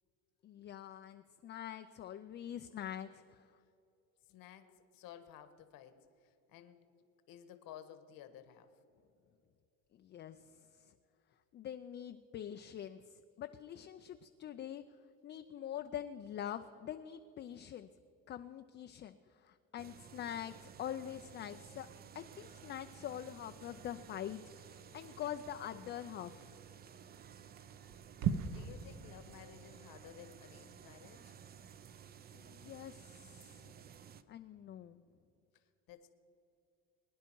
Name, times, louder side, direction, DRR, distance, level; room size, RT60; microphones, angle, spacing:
voice 1, 0.4-3.5 9.9-10.9 11.5-14.8 15.2-17.9 18.3-21.9 22.1-26.6 32.3-33.7 34.3-35.0, left 10 dB, 30° left, 8 dB, 0.4 m, -45 dB
voice 2, 4.2-6.8 7.3-8.7 28.4-31.4 35.5-36.1, left 10 dB, 70° left, 9 dB, 1.3 m, -55 dB
sound 1, 19.8-34.2, right 8 dB, 25° right, 0.4 m, -55 dB
sound 2, 21.3-28.7, right 8 dB, 55° right, 0.9 m, -44 dB
22.0 x 10.5 x 4.6 m, 2.7 s
cardioid pair, 145°, 35 cm